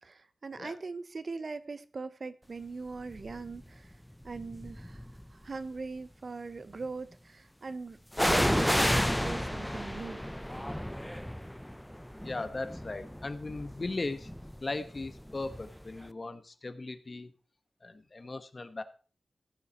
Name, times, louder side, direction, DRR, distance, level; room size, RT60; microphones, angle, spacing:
voice 1, 0.0-4.0 4.2-10.2, right 4 dB, 60° right, 0.7 m, -41 dB
sound 1, 3.2-3.5 4.3-5.2 8.1-15.8 16.0-16.1, equal, 5° left, 0.5 m, -32 dB
voice 2, 12.2-14.3 14.6-17.3 17.8-18.8, left 3 dB, 45° left, 1.1 m, -38 dB
15.5 x 7.4 x 4.2 m
wide cardioid pair, 85°, 0 cm